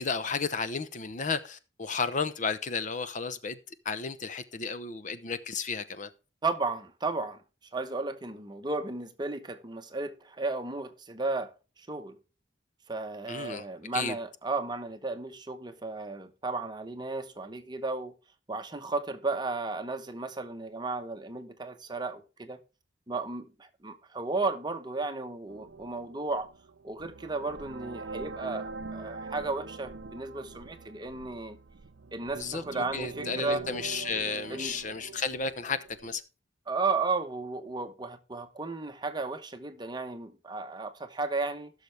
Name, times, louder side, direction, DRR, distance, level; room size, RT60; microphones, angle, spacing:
voice 1, 0.0-3.6 3.8-6.1 13.3-13.7 13.9-14.1 32.3-36.2, left 5 dB, 40° left, 0.8 m, -33 dB
voice 2, 6.4-7.4 7.7-11.5 11.8-12.2 12.9-18.1 18.5-22.6 23.1-26.5 26.8-31.6 32.1-33.6 34.5-34.8 36.7-41.7, right 3 dB, 25° right, 1.0 m, -34 dB
sound 1, 25.5-36.2, right 4 dB, 65° right, 0.6 m, -43 dB
16.0 x 6.6 x 3.3 m
head